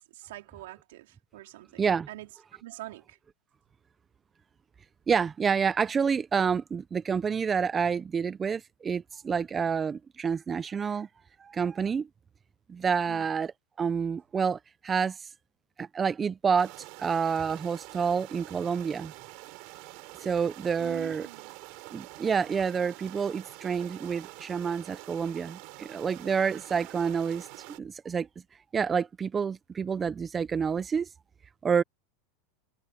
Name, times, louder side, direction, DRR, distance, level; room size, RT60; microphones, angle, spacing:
voice 1, 0.0-2.3 2.6-3.2 13.1-13.3 20.8-21.5, right 16 dB, 80° right, 4.0 m, -45 dB
voice 2, 5.1-11.1 11.4-12.1 12.7-13.5 13.8-15.3 15.8-19.1 20.2-21.3 21.9-27.5 27.8-28.3 28.7-31.1 31.6-31.8, right 6 dB, 15° right, 0.4 m, -28 dB
sound 1, 16.6-27.8, right 26 dB, 55° right, 3.3 m, -46 dB
supercardioid pair, 150°, 0 cm